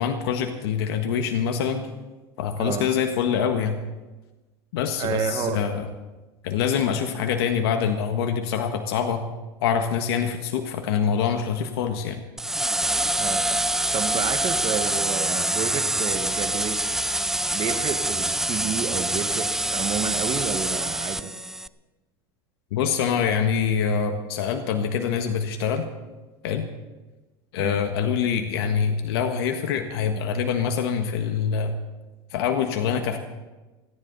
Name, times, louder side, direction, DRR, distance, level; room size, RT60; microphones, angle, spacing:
voice 1, 0.0-1.9 2.4-3.8 4.7-5.9 6.4-9.2 9.6-12.2 22.7-25.9 26.4-26.7 27.5-31.7 32.3-33.2, left 7 dB, 80° left, 5 dB, 1.6 m, -25 dB
voice 2, 2.5-2.9 5.0-5.6 13.2-13.6 13.9-16.9 17.5-21.3 27.6-27.8, right 8 dB, 40° right, 6 dB, 1.7 m, -30 dB
sound 1, 12.4-21.7, right 1 dB, 5° right, 0.4 m, -25 dB
29.0 x 10.5 x 4.1 m, 1.2 s
supercardioid pair, 110°, 13 cm